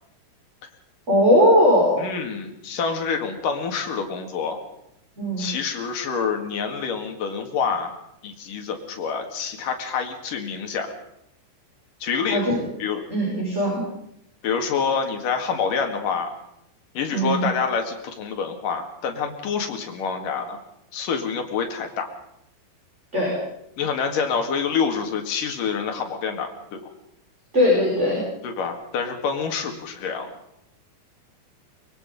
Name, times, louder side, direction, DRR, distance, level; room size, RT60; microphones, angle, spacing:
voice 1, 1.1-2.0 5.2-5.4 12.3-12.6 13.1-13.8 17.1-17.5 23.1-23.3 27.5-28.2, equal, 15° right, -3 dB, 5.7 m, -19 dB
voice 2, 2.0-4.6 5.4-7.9 8.2-10.9 12.0-12.5 12.8-13.0 14.4-16.4 16.9-20.6 20.9-22.1 23.8-26.9 28.4-30.3, left 6 dB, 55° left, 4 dB, 3.3 m, -27 dB
23.5 x 22.5 x 5.5 m, 0.81 s
omnidirectional pair, 5.1 m